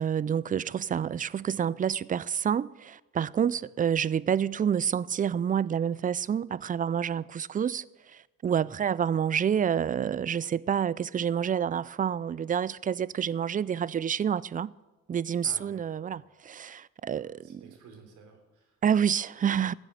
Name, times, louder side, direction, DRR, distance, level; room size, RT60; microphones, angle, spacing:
voice 1, 0.0-14.7 15.1-17.6 18.8-19.7, right 8 dB, 30° right, 0.4 m, -28 dB
voice 2, 15.4-16.3 17.1-18.8, right 5 dB, 75° right, 3.3 m, -53 dB
14.5 x 7.4 x 9.4 m
cardioid pair, 90°, 30 cm